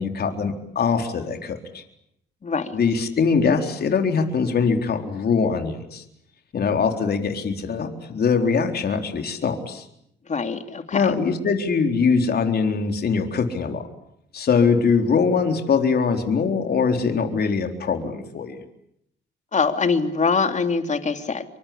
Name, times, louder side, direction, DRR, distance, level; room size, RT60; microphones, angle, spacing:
voice 1, 0.0-1.8 2.7-6.0 6.5-9.9 10.9-13.8 14.3-18.6, left 5 dB, 55° left, 5 dB, 4.1 m, -22 dB
voice 2, 2.4-2.7 10.3-11.1 19.5-21.4, left 4 dB, 35° left, 7 dB, 3.2 m, -23 dB
27.5 x 25.0 x 8.7 m, 0.75 s
cardioid pair, 90°, 20 cm